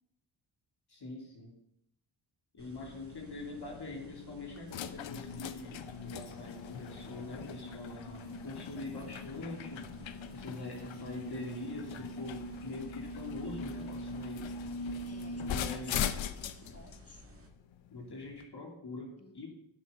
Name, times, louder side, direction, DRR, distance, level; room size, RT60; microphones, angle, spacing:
voice 1, 0.9-1.5 2.5-9.8 10.3-14.5 15.4-16.2 17.9-19.5, left 2 dB, 55° left, 0 dB, 2.7 m, -44 dB
sound 1, 2.6-17.5, right 2 dB, 30° right, 2.1 m, -56 dB
sound 2, 2.8-18.4, left 5 dB, 70° left, 0.9 m, -41 dB
voice 2, 10.6-11.3 15.1-17.3 19.2-19.5, left 2 dB, 30° left, 5 dB, 2.0 m, -57 dB
11.0 x 6.3 x 5.6 m, 0.75 s
supercardioid pair, 45°, 48 cm